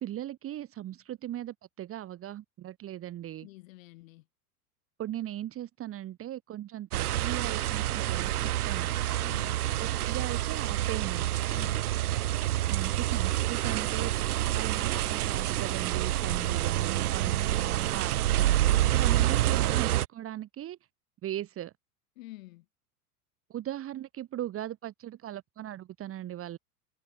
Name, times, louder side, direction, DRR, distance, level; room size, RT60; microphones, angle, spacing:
voice 1, 0.0-3.5 5.0-8.9 9.8-11.3 12.7-20.8 21.2-21.7 23.5-26.6, right 12 dB, 30° right, 2.0 m, -38 dB
voice 2, 3.4-4.3 9.2-9.6 11.5-12.0 16.3-16.6 17.2-17.8 22.2-22.7, left 19 dB, 55° left, 6.1 m, -48 dB
sound 1, 6.9-20.1, right 14 dB, 70° right, 0.8 m, -28 dB
figure-of-eight pair, 90°, 47 cm